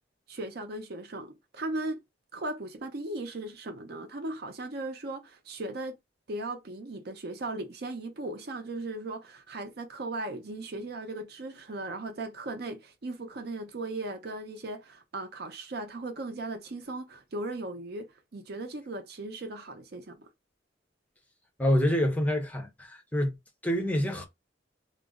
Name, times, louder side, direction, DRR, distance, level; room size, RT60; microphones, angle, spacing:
voice 1, 0.3-2.0 2.3-5.9 6.3-18.1 18.3-20.3, right 2 dB, 55° right, 0.6 m, -37 dB
voice 2, 21.6-23.4 23.6-24.2, equal, 10° left, 0.6 m, -27 dB
2.4 x 2.0 x 3.5 m
head